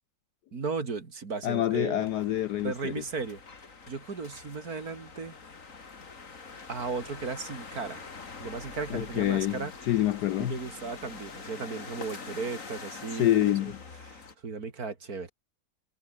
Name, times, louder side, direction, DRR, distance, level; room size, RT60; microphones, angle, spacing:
voice 1, 0.5-2.1 2.6-3.4 3.9-5.3 6.7-8.1 8.4-9.7 10.4-13.5 14.0-15.3, right 4 dB, 45° right, 2.9 m, -36 dB
voice 2, 1.4-2.9 8.9-10.6 13.1-13.8, left 13 dB, 70° left, 1.0 m, -27 dB
sound 1, 2.0-14.4, left 4 dB, 40° left, 2.6 m, -45 dB
omnidirectional pair, 2.2 m